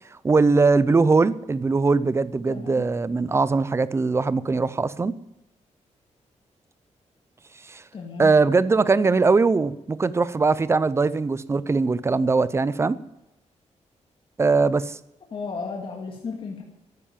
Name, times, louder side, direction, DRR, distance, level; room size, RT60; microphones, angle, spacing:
voice 1, 0.2-5.1 7.7-7.8 8.2-13.0 14.4-15.0, right 4 dB, 20° right, 17 dB, 0.6 m, -21 dB
voice 2, 2.5-2.9 7.9-8.3 15.3-16.6, left 4 dB, 45° left, 1 dB, 2.0 m, -34 dB
12.5 x 9.8 x 8.9 m, 0.91 s
wide cardioid pair, 155°, 12 cm